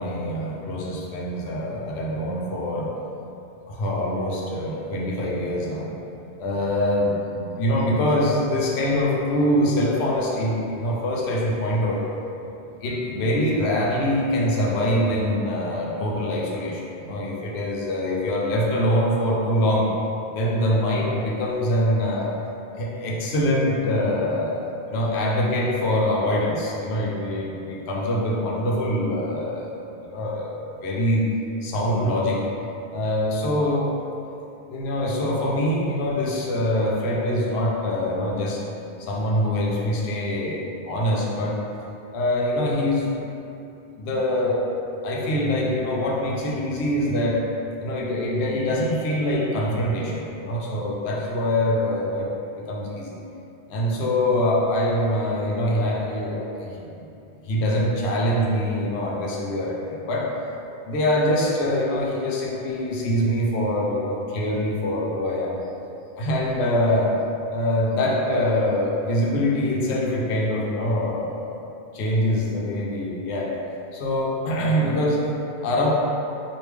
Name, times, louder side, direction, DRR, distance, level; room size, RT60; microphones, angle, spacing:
voice 1, 0.0-2.9 3.7-5.9 6.4-12.1 12.8-19.9 20.3-22.3 22.7-24.6 24.9-30.5 30.8-31.3 31.6-32.4 32.9-33.9 34.7-38.6 39.0-41.6 42.1-43.1 44.0-44.6 45.0-47.4 47.8-52.3 52.6-53.2 53.7-57.1 57.4-60.3 60.8-65.6 66.2-67.1 67.5-71.5 71.9-73.5 73.9-75.2 75.6-75.9, left 1 dB, 80° left, -3 dB, 0.9 m, -24 dB
3.3 x 2.5 x 3.1 m, 2.8 s
omnidirectional pair, 1.1 m